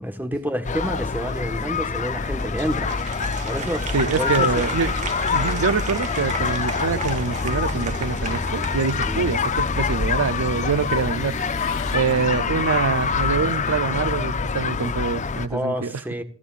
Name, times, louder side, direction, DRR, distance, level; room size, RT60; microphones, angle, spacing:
voice 1, 0.0-2.9 3.4-4.6 9.0-9.2 15.5-16.2, equal, 10° right, 1.3 m, -29 dB
sound 1, 0.6-15.5, left 5 dB, 35° left, 0.6 m, -25 dB
Engine, 1.7-14.9, left 3 dB, 85° left, 3.3 m, -45 dB
Applause, 2.3-9.8, right 5 dB, 35° right, 1.7 m, -35 dB
voice 2, 3.9-4.9 5.3-11.6 11.9-15.9, right 5 dB, 90° right, 0.5 m, -25 dB
28.0 x 9.7 x 2.4 m
head